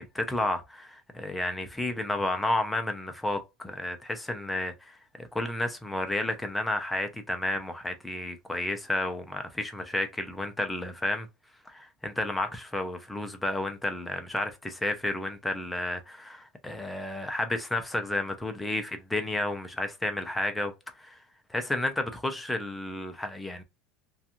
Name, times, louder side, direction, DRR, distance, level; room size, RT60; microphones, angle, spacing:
voice 1, 0.0-11.3 11.7-21.2 21.5-23.6, left 1 dB, 5° left, 0.4 m, -31 dB
2.5 x 2.2 x 2.8 m
cardioid pair, 165°, 0 cm